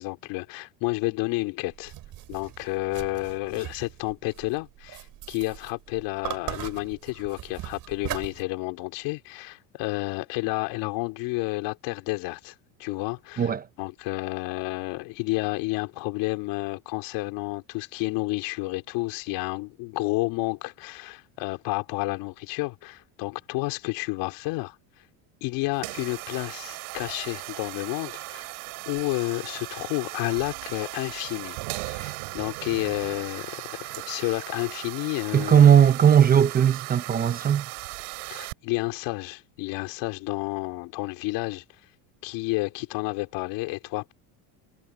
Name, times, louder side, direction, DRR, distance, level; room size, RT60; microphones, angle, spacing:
voice 1, 0.0-1.9 2.3-12.5 12.8-13.5 13.8-24.8 25.4-28.5 28.9-35.6 38.3-41.6 42.2-44.1, left 23 dB, 65° left, 3.5 m, -30 dB
sound 1, 1.7-8.4, right 14 dB, 50° right, 5.4 m, -39 dB
sound 2, 25.7-38.5, right 31 dB, 80° right, 3.2 m, -37 dB
voice 2, 35.3-37.7, right 9 dB, 20° right, 0.7 m, -18 dB
cardioid pair, 140°, 45 cm